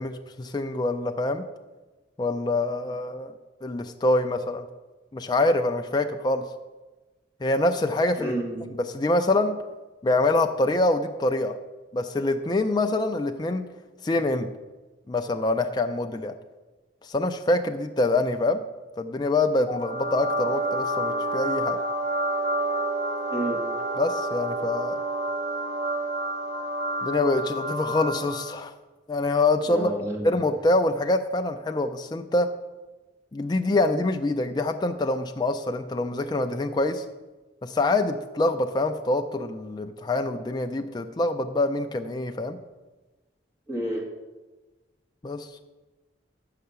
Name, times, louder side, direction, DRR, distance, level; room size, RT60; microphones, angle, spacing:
voice 1, 0.0-1.4 2.2-3.3 3.6-4.6 5.1-6.4 7.4-8.3 8.8-9.6 10.0-11.5 11.9-13.6 14.0-14.5 15.1-16.3 17.0-18.6 19.0-21.8 24.0-25.0 27.0-28.7 29.1-29.9 30.2-32.5 33.3-37.0 37.6-42.6 45.2-45.5, left 2 dB, 25° left, 6 dB, 0.3 m, -25 dB
voice 2, 8.2-8.7 23.3-23.6 29.7-30.4 43.7-44.0, right 1 dB, 15° right, -3 dB, 1.9 m, -30 dB
sound 1, 19.7-28.6, right 1 dB, 65° right, 0.9 m, -29 dB
7.4 x 5.7 x 6.8 m, 1.2 s
head